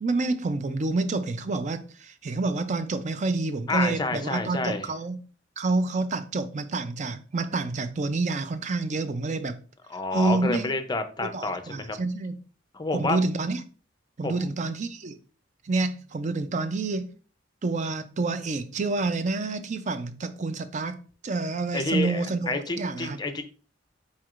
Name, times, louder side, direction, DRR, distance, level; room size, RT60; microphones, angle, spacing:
voice 1, 0.0-5.2 5.6-9.6 10.1-10.7 11.2-12.4 12.9-13.6 14.2-15.2 15.6-17.1 17.6-23.2, right 3 dB, 40° right, 0.4 m, -28 dB
voice 2, 3.7-4.9 9.9-12.0 12.7-13.2 14.2-14.5 21.7-23.4, left 3 dB, 20° left, 0.5 m, -29 dB
4.6 x 4.3 x 2.4 m
head